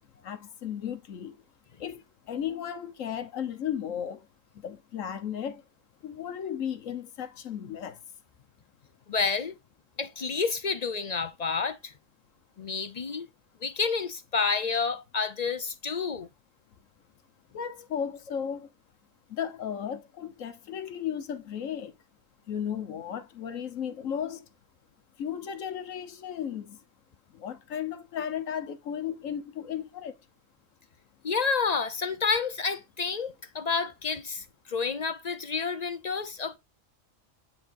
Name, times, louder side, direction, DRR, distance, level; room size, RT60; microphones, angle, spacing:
voice 1, 0.2-1.4 1.8-4.3 4.6-5.6 6.0-8.0 17.5-18.7 19.3-22.0 22.5-24.4 25.2-26.8 27.3-30.1, left 8 dB, 75° left, 1.4 m, -35 dB
voice 2, 9.1-9.5 10.0-11.9 12.6-13.3 13.6-16.3 31.2-36.6, left 5 dB, 50° left, 0.5 m, -29 dB
9.8 x 4.1 x 2.5 m
omnidirectional pair, 1.4 m